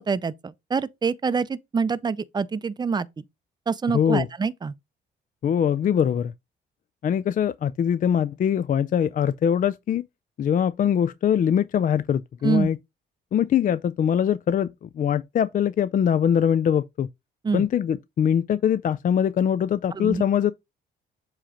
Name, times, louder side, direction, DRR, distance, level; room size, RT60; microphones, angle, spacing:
voice 1, 0.0-3.1 3.7-4.7 12.4-12.7 17.4-17.7 19.9-20.2, right 5 dB, 20° right, 0.5 m, -26 dB
voice 2, 3.9-4.3 5.4-6.3 7.0-10.0 10.4-12.8 13.3-17.1 17.5-20.5, left 8 dB, 40° left, 0.4 m, -22 dB
7.5 x 3.0 x 4.9 m
cardioid pair, 90°, 20 cm